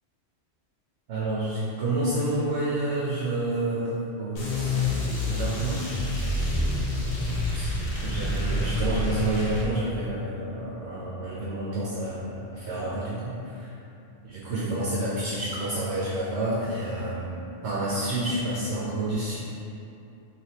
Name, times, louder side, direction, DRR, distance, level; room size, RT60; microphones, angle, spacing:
voice 1, 1.1-5.8 7.5-7.7 8.0-13.7 14.2-19.4, right 1 dB, 75° right, -7 dB, 0.9 m, -29 dB
sound 1, 4.4-9.7, left 1 dB, 80° left, 1.0 m, -27 dB
3.4 x 2.6 x 2.8 m, 2.7 s
omnidirectional pair, 1.1 m